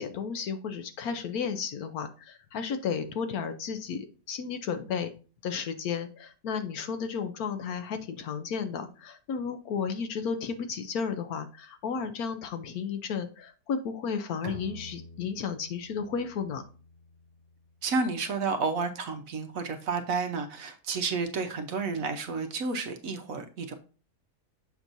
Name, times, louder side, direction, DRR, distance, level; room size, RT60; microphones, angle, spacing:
voice 1, 0.0-5.1 5.4-16.6, left 6 dB, 70° left, 1.0 m, -33 dB
Bowed string instrument, 14.4-17.9, right 1 dB, 90° right, 1.4 m, -47 dB
voice 2, 17.8-23.7, right 4 dB, 60° right, 1.1 m, -31 dB
7.1 x 5.8 x 2.6 m
omnidirectional pair, 1.8 m